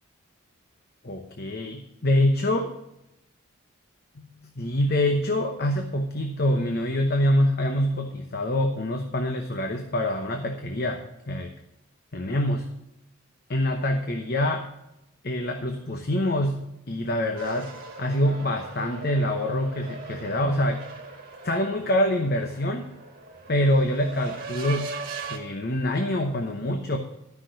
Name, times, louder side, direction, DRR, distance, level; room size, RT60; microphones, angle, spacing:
voice 1, 1.0-2.6 4.2-11.5 12.1-12.7 13.5-14.7 15.2-20.8 21.4-22.9 23.5-24.9 25.3-27.0, left 1 dB, 45° left, 4 dB, 0.9 m, -25 dB
sound 1, 17.4-25.4, right 4 dB, 40° right, 1.7 m, -39 dB
13.0 x 5.9 x 6.3 m, 0.85 s
head